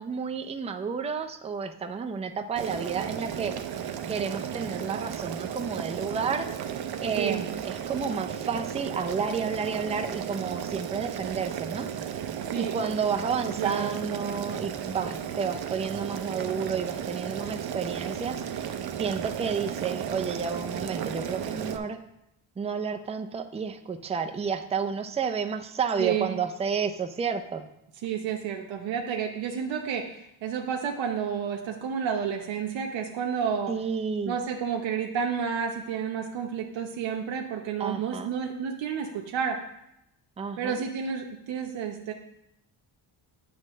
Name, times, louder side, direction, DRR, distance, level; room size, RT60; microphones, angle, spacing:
voice 1, 0.0-3.5 4.1-6.5 7.0-11.9 12.5-18.7 19.0-22.0 22.6-27.7 33.7-34.4 37.8-38.3 40.4-40.8, right 6 dB, 15° right, 6 dB, 0.4 m, -31 dB
Boiling, 2.6-21.8, right 9 dB, 55° right, 0.6 m, -34 dB
voice 2, 7.2-7.5 12.4-12.7 13.4-13.9 26.0-26.3 28.0-33.7 34.2-39.6 40.6-42.1, right 7 dB, 90° right, 2 dB, 0.9 m, -30 dB
9.5 x 3.2 x 6.2 m, 0.82 s
cardioid pair, 140°, 44 cm